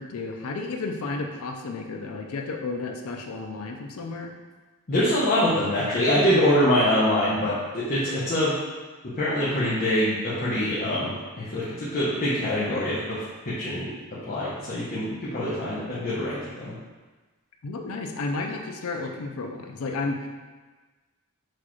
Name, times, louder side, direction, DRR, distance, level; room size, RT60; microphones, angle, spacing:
voice 1, 0.0-4.3 17.6-20.3, left 3 dB, 70° left, 3 dB, 0.5 m, -32 dB
voice 2, 4.9-8.5 9.0-13.9 14.3-16.8, left 1 dB, 40° left, -9 dB, 0.7 m, -24 dB
6.1 x 2.4 x 3.0 m, 1.3 s
head